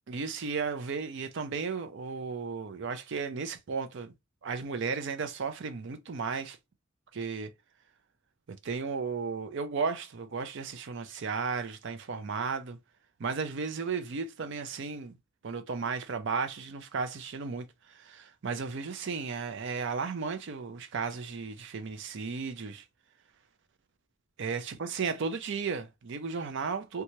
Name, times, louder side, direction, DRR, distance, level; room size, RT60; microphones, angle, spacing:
voice 1, 0.1-4.1 4.4-6.6 7.1-7.5 8.5-12.8 13.2-15.2 15.4-22.8 24.4-27.0, right 5 dB, 60° right, 0.5 m, -34 dB
3.0 x 2.3 x 2.7 m
head